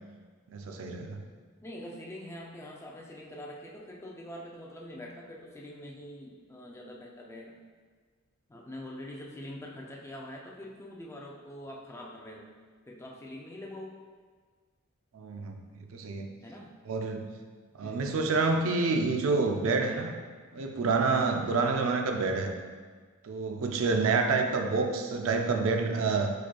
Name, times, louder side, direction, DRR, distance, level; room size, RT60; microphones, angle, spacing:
voice 1, 0.5-1.2 15.1-16.3 16.9-17.3 17.8-20.1 20.5-22.5 23.2-26.3, right 4 dB, 70° right, 4 dB, 0.4 m, -28 dB
voice 2, 1.6-7.5 8.5-12.5 12.9-14.0 16.4-16.8 17.8-18.2 21.6-21.8, left 1 dB, 10° left, -1 dB, 0.4 m, -44 dB
4.8 x 4.2 x 2.3 m, 1.5 s
head